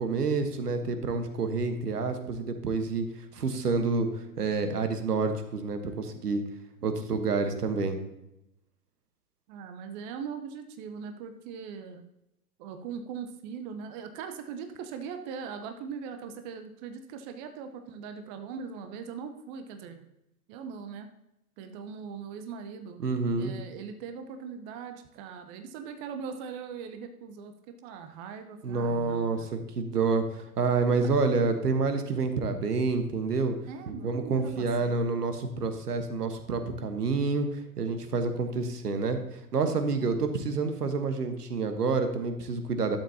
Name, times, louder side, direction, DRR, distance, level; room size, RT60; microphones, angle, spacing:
voice 1, 0.0-3.1 3.3-4.1 4.4-6.4 6.8-8.0 23.0-23.5 28.6-33.6 33.9-43.0, right 4 dB, 75° right, 8 dB, 1.3 m, -28 dB
voice 2, 9.5-12.0 12.6-20.1 20.5-21.1 21.6-23.0 23.4-27.5 27.8-29.5 33.7-35.0 40.0-40.1, right 6 dB, 30° right, 7 dB, 0.7 m, -40 dB
12.0 x 7.2 x 2.8 m, 0.86 s
figure-of-eight pair, 105°, 47 cm